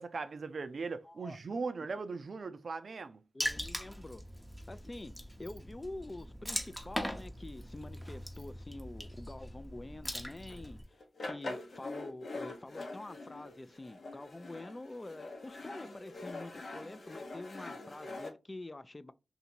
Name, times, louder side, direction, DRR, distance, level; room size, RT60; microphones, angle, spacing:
voice 1, 0.0-3.2, right 4 dB, 70° right, 0.4 m, -39 dB
voice 2, 1.0-1.4 3.3-4.2 4.7-5.1 5.4-10.8 11.2-19.1, left 2 dB, 30° left, 0.4 m, -46 dB
Water / Splash splatter, 3.4-10.8, equal, 5° left, 0.8 m, -41 dB
sound 1, 10.5-10.6 11.0-18.3, left 2 dB, 70° left, 0.8 m, -44 dB
2.7 x 2.7 x 4.3 m
cardioid pair, 45°, 0 cm